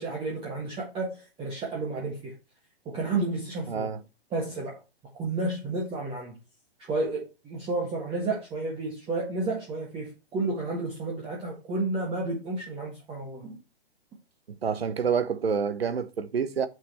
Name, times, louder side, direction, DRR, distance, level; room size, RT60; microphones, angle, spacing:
voice 1, 0.0-2.3 2.8-3.9 4.3-4.8 5.2-6.4 6.9-13.6, right 3 dB, 15° right, 1.8 m, -31 dB
voice 2, 3.7-4.0 14.6-16.7, right 6 dB, 80° right, 1.1 m, -27 dB
6.2 x 6.1 x 4.2 m
hypercardioid pair, 130°, 30 cm